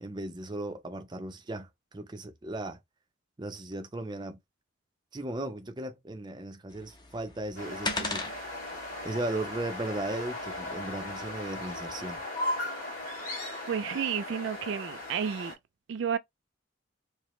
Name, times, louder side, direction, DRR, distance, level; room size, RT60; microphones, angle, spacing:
voice 1, 0.0-2.8 3.4-4.4 5.1-8.3 9.0-12.2, right 2 dB, 20° right, 0.6 m, -36 dB
sound 1, 6.7-12.2, left 3 dB, 20° left, 0.7 m, -41 dB
sound 2, 7.6-15.5, left 1 dB, 45° left, 2.2 m, -37 dB
voice 2, 13.7-15.5 15.9-16.2, right 7 dB, 70° right, 0.3 m, -31 dB
4.8 x 2.1 x 3.0 m
head